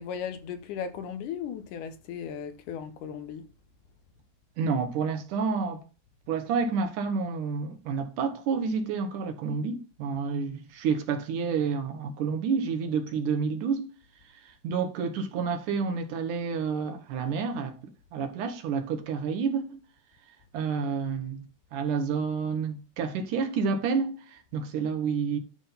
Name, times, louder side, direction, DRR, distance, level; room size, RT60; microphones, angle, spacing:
voice 1, 0.0-3.5, left 7 dB, 75° left, 2.1 m, -36 dB
voice 2, 4.6-5.8 6.3-13.9 14.4-19.8 20.3-21.4 21.7-25.4, right 5 dB, 70° right, 2.5 m, -29 dB
11.0 x 3.7 x 5.6 m
omnidirectional pair, 4.0 m